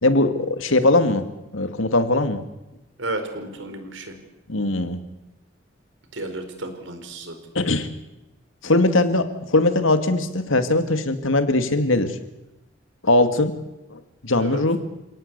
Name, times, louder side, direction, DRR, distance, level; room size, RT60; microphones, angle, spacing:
voice 1, 0.0-1.3 1.5-2.4 4.5-5.0 7.6-7.9 8.6-12.1 13.0-13.5 13.9-14.8, left 2 dB, 85° left, 9 dB, 2.3 m, -20 dB
voice 2, 3.0-4.1 6.1-7.3 14.4-14.6, right 2 dB, 70° right, 7 dB, 4.7 m, -32 dB
28.5 x 18.0 x 8.3 m, 0.97 s
head